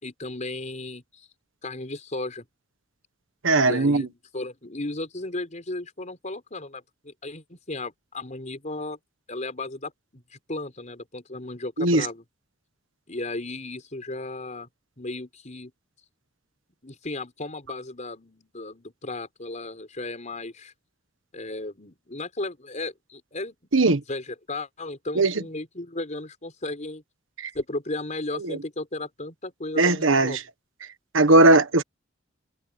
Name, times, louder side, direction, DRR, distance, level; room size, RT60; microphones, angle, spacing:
voice 1, 0.0-1.3 1.6-2.5 3.6-9.0 9.3-12.2 13.1-14.7 15.0-15.7 16.8-20.7 21.3-23.5 24.1-27.0 27.5-30.4, left 2 dB, 40° left, 4.7 m, -35 dB
voice 2, 3.4-4.0 11.8-12.1 23.7-24.0 25.1-25.3 27.4-27.5 28.4-28.6 29.8-30.4 31.1-31.8, right 2 dB, 90° right, 1.4 m, -18 dB
head